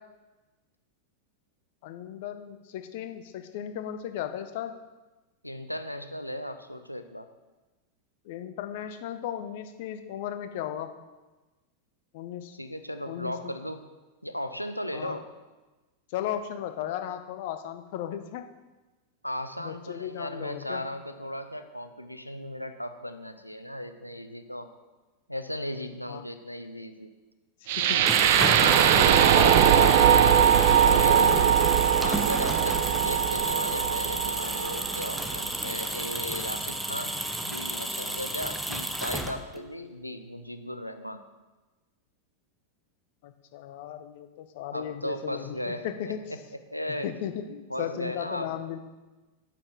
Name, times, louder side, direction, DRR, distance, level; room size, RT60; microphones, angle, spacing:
voice 1, 1.8-4.7 8.2-10.9 12.1-12.6 13.1-13.5 14.9-15.2 16.1-18.4 19.6-20.8 26.1-26.2 27.8-28.0 28.7-30.3 30.8-31.6 32.6-32.7 43.2-46.2 47.0-48.8, left 10 dB, 50° left, 8 dB, 0.8 m, -35 dB
voice 2, 5.4-7.3 12.5-13.9 14.2-15.3 19.2-24.7 25.3-27.1 28.4-29.4 31.0-31.4 32.0-41.2 44.7-46.4 46.7-47.1 47.7-48.6, equal, 90° left, 8 dB, 0.7 m, -36 dB
sound 1, 27.7-35.7, right 9 dB, 50° right, 0.6 m, -21 dB
sound 2, 27.8-39.7, right 1 dB, 5° right, 0.7 m, -32 dB
9.0 x 8.9 x 4.7 m, 1.2 s
figure-of-eight pair, 90°, 0 cm